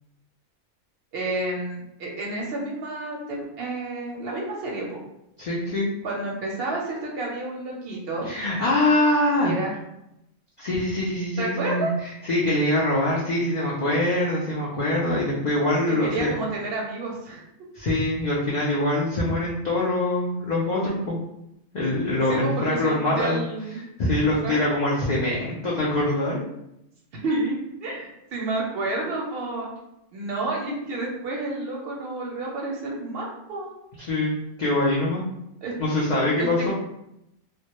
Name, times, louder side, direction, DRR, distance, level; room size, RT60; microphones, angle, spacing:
voice 1, 1.1-5.0 6.0-8.3 9.4-9.8 11.4-12.0 15.9-17.4 22.3-23.8 24.2-24.6 27.2-29.7 30.1-33.7 35.6-35.7 36.4-36.7, right 2 dB, 60° right, -2 dB, 0.7 m, -30 dB
voice 2, 5.4-5.9 8.2-9.5 10.6-11.9 12.3-16.3 17.7-21.2 21.7-23.4 24.0-26.4 34.1-35.2 35.8-36.7, left 1 dB, 80° left, -6 dB, 0.3 m, -24 dB
2.1 x 2.0 x 2.8 m, 0.84 s
omnidirectional pair, 1.3 m